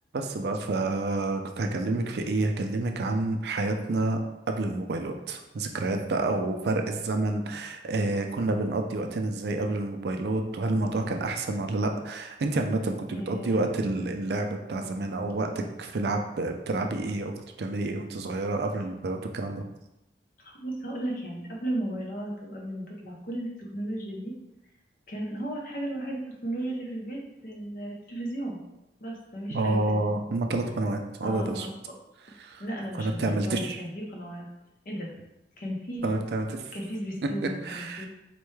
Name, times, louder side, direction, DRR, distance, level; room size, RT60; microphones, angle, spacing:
voice 1, 0.1-4.2 4.5-17.3 17.6-19.6 29.5-31.7 32.4-32.6 33.0-33.8 36.0-36.6 37.7-38.1, right 2 dB, 65° right, 4 dB, 0.4 m, -29 dB
voice 2, 13.1-13.6 20.4-24.3 25.1-28.6 29.0-30.1 31.2-31.7 32.6-34.5 34.8-35.1 35.6-36.1 36.7-38.1, right 1 dB, 50° left, -1 dB, 0.7 m, -35 dB
4.4 x 2.2 x 3.1 m, 0.94 s
head